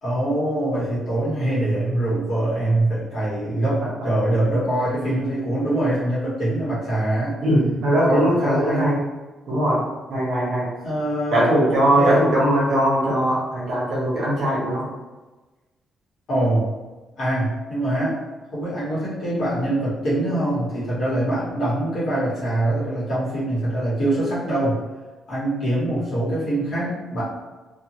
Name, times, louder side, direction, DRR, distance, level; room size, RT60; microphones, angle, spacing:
voice 1, 0.0-7.3 8.0-8.9 10.8-11.5 12.0-12.1 16.3-16.7 17.2-18.1 18.5-24.8 25.3-27.2, right 1 dB, 50° left, -9 dB, 1.4 m, -23 dB
voice 2, 7.4-9.0 9.5-9.8 10.1-10.7 11.3-14.9, right 1 dB, 50° right, -6 dB, 1.2 m, -20 dB
2.7 x 2.6 x 3.0 m, 1.2 s
cardioid pair, 180°, 0 cm